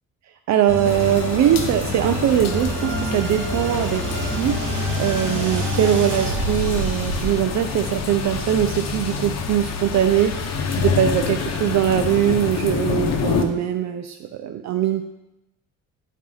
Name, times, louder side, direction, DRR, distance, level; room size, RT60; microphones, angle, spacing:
voice 1, 0.5-15.0, right 10 dB, 55° right, 7 dB, 0.5 m, -21 dB
sound 1, 0.7-7.3, right 1 dB, 80° right, 2.8 m, -27 dB
sound 2, 0.8-13.4, left 5 dB, 50° left, 1.0 m, -27 dB
10.5 x 4.6 x 3.9 m, 0.91 s
cardioid pair, 120°, 33 cm